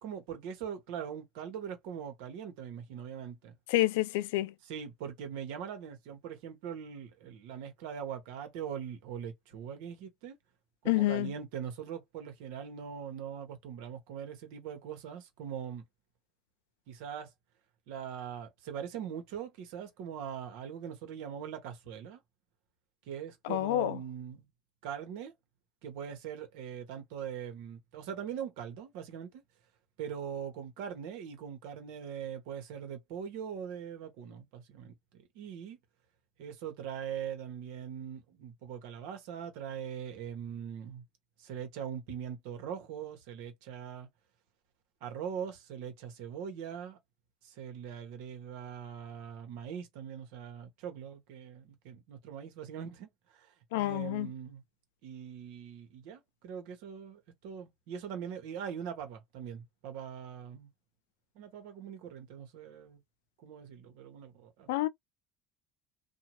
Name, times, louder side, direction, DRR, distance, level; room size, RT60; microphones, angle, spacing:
voice 1, 0.0-3.5 4.6-10.4 10.8-15.8 16.9-17.3 17.9-22.2 23.1-24.5 24.8-25.3 25.8-29.4 30.0-35.8 36.4-41.0 41.4-44.1 45.0-47.0 47.4-54.6 55.0-60.7 61.3-63.0 63.4-64.7, right 8 dB, 75° right, 1.1 m, -41 dB
voice 2, 3.7-4.5 10.9-11.3 23.4-24.0 53.7-54.3 64.7-64.9, left 16 dB, 80° left, 0.3 m, -28 dB
2.7 x 2.3 x 3.0 m
supercardioid pair, 110°, 0 cm